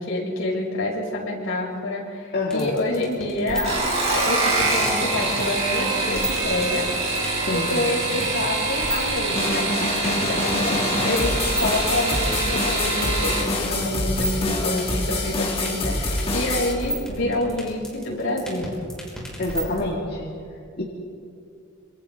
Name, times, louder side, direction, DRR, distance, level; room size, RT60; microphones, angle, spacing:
voice 1, 0.0-6.9 7.5-18.7, left 1 dB, 65° left, -3 dB, 6.0 m, -27 dB
voice 2, 2.3-2.7 7.5-7.7 19.4-20.3 20.8-20.9, left 2 dB, 50° left, -4 dB, 2.5 m, -26 dB
sound 1, 2.5-19.8, right 1 dB, 5° left, 6.0 m, -32 dB
sound 2, 3.5-13.5 14.7-15.2 15.6-16.0 16.3-16.4, right 2 dB, 30° right, 6.0 m, -25 dB
sound 3, 9.4-16.7, left 2 dB, 30° left, 2.4 m, -26 dB
27.0 x 26.0 x 4.0 m, 2.5 s
head